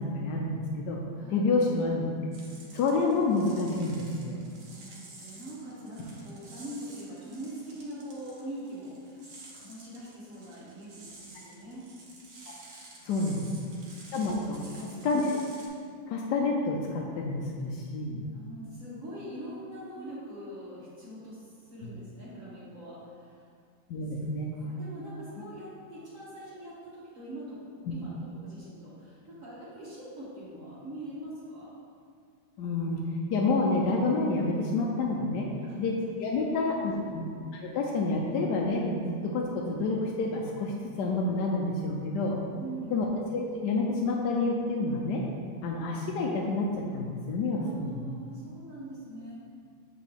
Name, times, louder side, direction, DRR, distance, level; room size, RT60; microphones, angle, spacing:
voice 1, 0.0-1.0 1.3-2.0 2.7-4.4 13.0-13.4 14.1-14.6 15.0-15.3 16.1-18.2 21.8-21.9 23.9-24.5 32.6-33.0 33.3-35.5 35.8-37.2 37.5-42.4 42.9-43.1 43.3-45.2 45.6-48.0, left 3 dB, 70° left, -1 dB, 1.1 m, -28 dB
sound 1, 2.3-15.7, right 2 dB, 75° right, 1.6 m, -51 dB
voice 2, 4.6-9.3 9.5-11.8 13.0-13.4 13.9-14.7 18.2-23.4 24.5-27.6 27.9-31.7 35.6-35.8 36.4-37.1 42.5-43.0 47.6-49.3, right 1 dB, 50° right, -8 dB, 1.4 m, -43 dB
7.5 x 3.7 x 3.4 m, 2.2 s
omnidirectional pair, 2.0 m